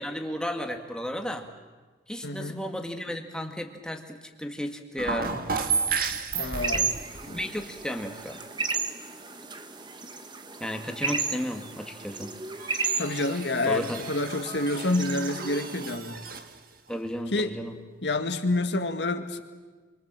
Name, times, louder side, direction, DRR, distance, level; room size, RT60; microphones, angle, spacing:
voice 1, 0.0-1.5 2.1-5.4 7.2-8.4 10.6-12.4 13.6-14.0 16.9-17.8, equal, 5° left, 4 dB, 2.0 m, -33 dB
voice 2, 2.2-2.6 6.3-6.9 7.3-7.4 13.0-16.2 17.3-17.5 18.0-19.4, left 2 dB, 70° left, 7 dB, 2.0 m, -28 dB
sound 1, 5.0-7.8 12.5-16.6 16.9-17.0, right 5 dB, 50° right, 1.7 m, -33 dB
sound 2, 6.5-15.9, right 4 dB, 25° right, 1.3 m, -34 dB
29.5 x 24.0 x 7.6 m, 1.4 s
head